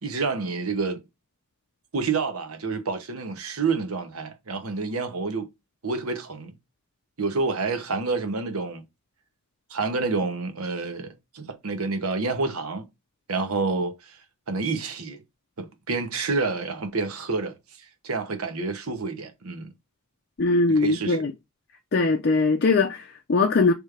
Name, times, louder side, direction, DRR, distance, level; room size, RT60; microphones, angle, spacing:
voice 1, 0.0-1.0 1.9-5.5 5.8-6.5 7.2-8.8 9.7-12.9 13.3-14.2 14.5-15.2 15.6-17.6 18.0-19.7 20.7-21.2, right 4 dB, 85° right, 1.0 m, -28 dB
voice 2, 20.4-21.3 21.9-23.7, left 3 dB, 50° left, 0.5 m, -21 dB
3.3 x 3.2 x 4.8 m
head